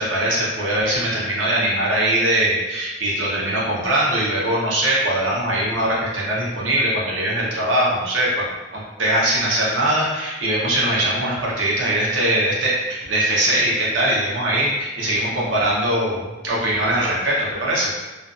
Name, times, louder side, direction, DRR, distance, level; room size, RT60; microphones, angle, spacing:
voice 1, 0.0-8.5 8.7-17.9, right 1 dB, 75° right, -5 dB, 0.8 m, -21 dB
2.5 x 2.3 x 2.4 m, 1.2 s
head